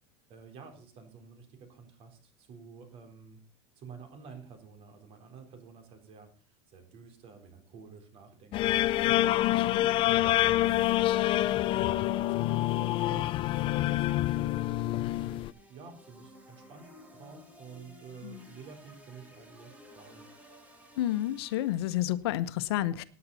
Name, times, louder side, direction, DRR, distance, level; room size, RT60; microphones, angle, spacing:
voice 1, 0.3-3.4 3.8-14.8 15.5-20.3, right 5 dB, 50° right, 5 dB, 4.1 m, -50 dB
sound 1, 8.5-15.5, left 15 dB, 40° left, 0.5 m, -27 dB
voice 2, 9.4-9.8 18.2-18.5 21.0-23.0, left 13 dB, 80° left, 14 dB, 0.9 m, -30 dB
sound 2, 15.1-22.2, equal, 10° right, 3.8 m, -55 dB
17.5 x 9.5 x 4.1 m, 0.40 s
supercardioid pair, 130°, 13 cm